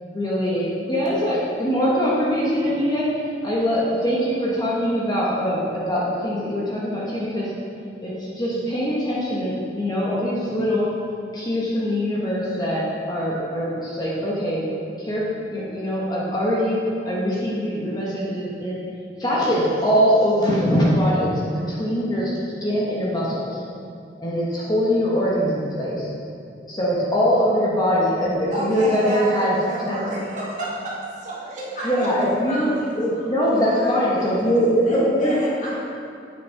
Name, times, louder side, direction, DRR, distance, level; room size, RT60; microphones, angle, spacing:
voice 1, 0.0-3.0 3.4-7.5 8.0-10.9 11.3-14.6 15.0-15.2 15.5-16.8 17.0-18.8 19.2-23.6 24.2-26.1 26.7-29.6 29.9-30.2 31.8-32.7 33.0-35.3, equal, 25° left, -6 dB, 1.3 m, -22 dB
voice 2, 28.5-31.7, right 1 dB, 45° right, -7 dB, 2.2 m, -30 dB
voice 3, 31.8-34.6 34.8-35.7, left 1 dB, 50° left, -6 dB, 2.1 m, -36 dB
8.5 x 6.3 x 4.6 m, 2.5 s
head